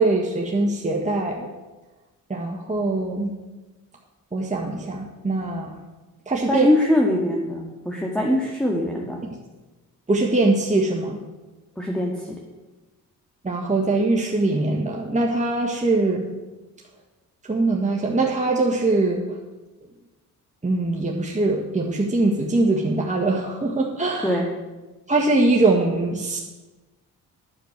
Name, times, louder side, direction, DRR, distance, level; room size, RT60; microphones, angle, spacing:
voice 1, 0.0-1.5 2.3-3.4 4.3-5.7 6.3-6.7 10.1-11.2 13.4-16.3 17.4-19.4 20.6-24.4 25.1-26.4, right 2 dB, 20° right, -1 dB, 1.5 m, -22 dB
voice 2, 6.5-9.2 11.8-12.4 24.2-24.5, left 1 dB, ahead, -1 dB, 1.9 m, -22 dB
10.0 x 6.7 x 7.9 m, 1.2 s
cardioid pair, 70°, 37 cm